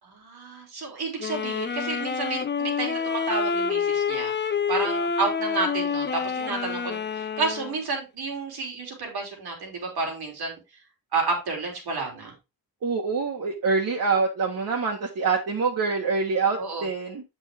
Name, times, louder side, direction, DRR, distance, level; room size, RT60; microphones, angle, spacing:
voice 1, 0.0-10.6 11.1-12.3 16.6-16.9, right 4 dB, 90° right, 3.4 m, -31 dB
sound 1, 1.2-7.8, left 6 dB, 30° left, 0.6 m, -28 dB
voice 2, 12.8-17.2, right 4 dB, 60° right, 1.7 m, -25 dB
8.2 x 5.5 x 3.7 m
wide cardioid pair, 115°, 37 cm